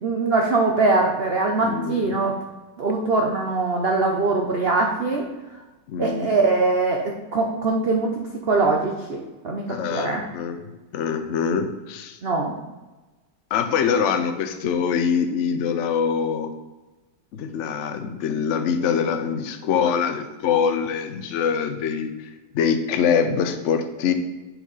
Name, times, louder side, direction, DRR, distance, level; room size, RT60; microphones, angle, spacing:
voice 1, 0.0-2.3 2.8-5.2 6.0-8.2 8.5-10.2 12.2-12.5, right 3 dB, 65° right, 1 dB, 0.6 m, -22 dB
voice 2, 1.6-2.1 5.9-6.3 9.7-10.6 10.9-12.2 13.5-16.5 17.3-24.1, left 7 dB, 90° left, 8 dB, 0.6 m, -24 dB
8.0 x 4.6 x 4.0 m, 1.2 s
omnidirectional pair, 2.0 m